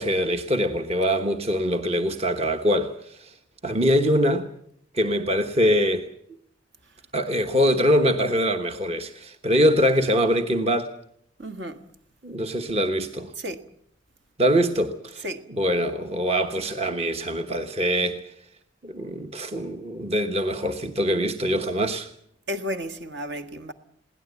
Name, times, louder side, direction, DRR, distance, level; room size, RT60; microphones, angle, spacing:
voice 1, 0.0-3.3 3.6-4.5 4.9-6.1 7.1-10.9 12.2-13.3 14.4-15.2 15.5-18.2 18.8-22.1, equal, 30° right, 1.2 m, -23 dB
voice 2, 11.4-11.8 13.4-13.6 15.2-15.4 22.5-23.7, equal, 55° right, 1.6 m, -32 dB
22.0 x 17.5 x 8.2 m
head